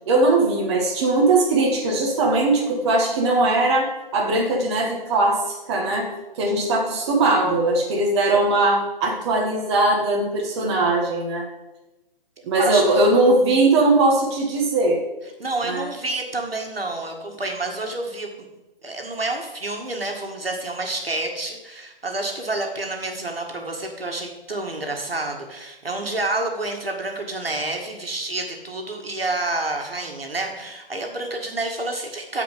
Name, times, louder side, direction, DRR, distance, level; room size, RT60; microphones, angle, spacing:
voice 1, 0.1-6.1 6.3-11.5 12.4-15.0 15.6-15.8, right 2 dB, 30° right, -1 dB, 1.6 m, -20 dB
voice 2, 12.5-13.0 15.4-18.5 18.8-32.4, right 2 dB, 80° right, 2 dB, 2.1 m, -29 dB
14.5 x 5.0 x 5.1 m, 1.1 s
figure-of-eight pair, 140°, 29 cm